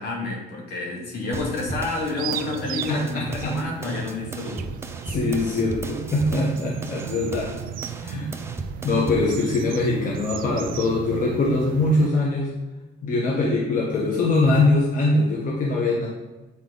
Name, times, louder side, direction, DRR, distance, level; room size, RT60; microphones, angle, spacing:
voice 1, 0.0-4.7, left 3 dB, 75° left, -2 dB, 2.3 m, -29 dB
sound 1, 1.3-9.3, right 2 dB, 15° right, 0.7 m, -36 dB
sound 2, 1.3-12.1, right 10 dB, 60° right, 0.4 m, -36 dB
voice 2, 2.9-3.6 5.1-7.5 8.0-8.3 8.8-12.5 13.0-16.1, left 2 dB, 50° left, -3 dB, 1.4 m, -22 dB
7.9 x 4.6 x 4.1 m, 1.1 s
cardioid pair, 110°, 17 cm